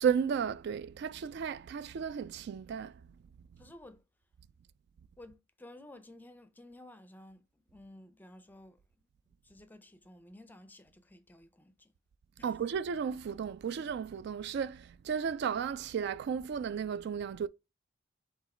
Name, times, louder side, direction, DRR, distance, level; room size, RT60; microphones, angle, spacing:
voice 1, 0.0-2.9 12.4-17.5, right 7 dB, 55° right, 0.3 m, -33 dB
voice 2, 3.6-4.0 5.2-9.1 9.4-11.9 12.4-12.6, left 1 dB, 10° left, 0.5 m, -54 dB
4.0 x 3.0 x 4.3 m
head